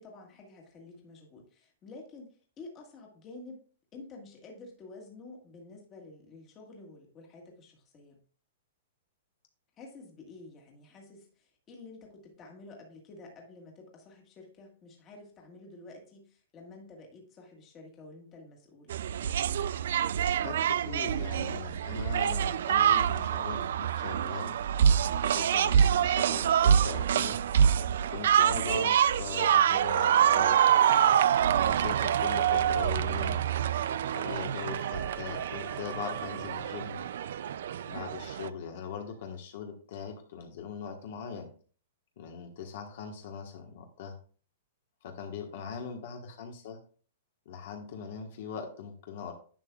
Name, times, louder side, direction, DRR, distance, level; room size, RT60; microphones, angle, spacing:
voice 1, 0.0-3.6 3.9-8.2 9.8-19.0, left 3 dB, 20° left, 1 dB, 1.7 m, -50 dB
sound 1, 18.9-38.5, right 9 dB, 60° right, 0.3 m, -26 dB
voice 2, 20.2-24.5 25.2-27.4 28.1-31.2 31.6-33.4 34.1-37.0 37.9-41.5 42.2-44.1 45.0-46.8 47.4-49.3, left 6 dB, 50° left, 3 dB, 1.3 m, -40 dB
sound 2, 34.5-39.1, right 3 dB, 15° right, 1.0 m, -51 dB
10.5 x 7.0 x 2.4 m, 0.41 s
hypercardioid pair, 170°, 0 cm